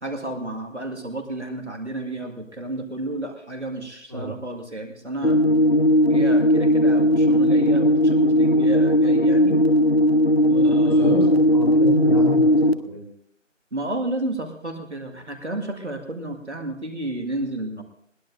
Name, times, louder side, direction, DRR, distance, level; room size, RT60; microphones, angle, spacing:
voice 1, 0.0-5.5 6.1-9.6 10.4-11.3 13.7-17.8, right 2 dB, 60° right, 4 dB, 2.0 m, -31 dB
sound 1, 5.2-12.7, equal, 50° left, 1.0 m, -17 dB
voice 2, 11.0-13.1, left 1 dB, 30° right, -1 dB, 2.5 m, -28 dB
21.0 x 16.0 x 2.6 m, 0.72 s
figure-of-eight pair, 180°, 39 cm